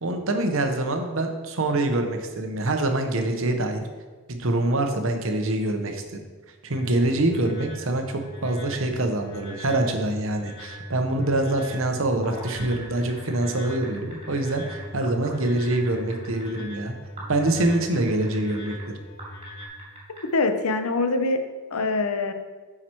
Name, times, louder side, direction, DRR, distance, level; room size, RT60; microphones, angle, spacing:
voice 1, 0.0-3.9 4.3-6.0 6.6-16.9 17.3-18.9, right 2 dB, 65° right, 5 dB, 0.9 m, -25 dB
sound 1, 6.7-19.7, equal, 50° left, 1.7 m, -40 dB
sound 2, 12.1-16.6 17.2-18.8 19.2-20.2, right 1 dB, 30° right, 2.5 m, -42 dB
voice 2, 20.3-21.4 21.7-22.3, left 3 dB, 85° left, 7 dB, 0.7 m, -24 dB
8.8 x 4.9 x 4.5 m, 1.4 s
head